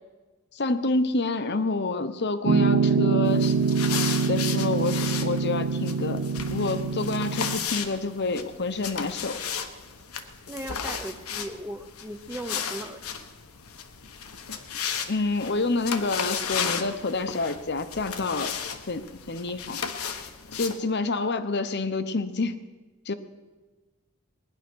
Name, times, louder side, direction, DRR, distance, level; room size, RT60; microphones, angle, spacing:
voice 1, 0.5-3.6 4.3-6.2 6.5-9.4 15.1-18.5 18.9-19.8 20.5-22.6 23.1-23.2, left 3 dB, 50° left, 11 dB, 0.9 m, -28 dB
Piano, 2.5-7.6, right 5 dB, 85° right, 0.8 m, -24 dB
sound 1, 3.3-20.8, left 7 dB, 80° left, 1.2 m, -35 dB
voice 2, 10.5-13.3, right 1 dB, 10° right, 4 dB, 0.6 m, -38 dB
20.0 x 10.5 x 6.3 m, 1.3 s
head